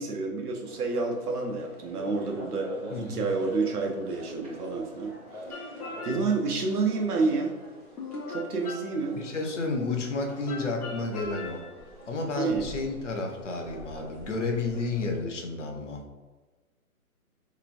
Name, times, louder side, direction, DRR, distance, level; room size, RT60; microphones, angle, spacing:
voice 1, 0.0-5.1 5.5-5.6 6.0-7.5 8.3-9.2 12.4-12.7, right 4 dB, 90° right, 2 dB, 0.9 m, -29 dB
sound 1, 0.6-15.2, right 1 dB, 25° right, 0.7 m, -46 dB
voice 2, 2.9-3.2 9.1-11.6 12.1-16.0, left 3 dB, 55° left, 2 dB, 0.6 m, -31 dB
sound 2, 5.5-6.6 8.0-9.4 10.5-11.9, left 3 dB, 90° left, 0.8 m, -40 dB
3.5 x 2.9 x 2.4 m, 1.3 s
hypercardioid pair, 165°, 44 cm